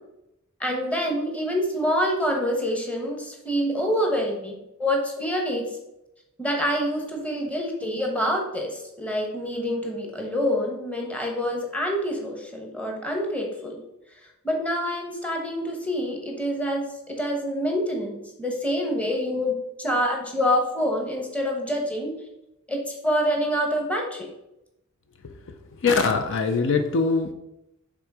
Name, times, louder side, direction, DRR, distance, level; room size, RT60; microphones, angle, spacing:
voice 1, 0.6-5.6 6.4-13.8 14.4-22.1 22.7-24.3, equal, 5° left, 1 dB, 1.0 m, -26 dB
voice 2, 25.8-27.3, left 4 dB, 60° left, 7 dB, 0.5 m, -22 dB
6.0 x 3.7 x 4.8 m, 0.89 s
head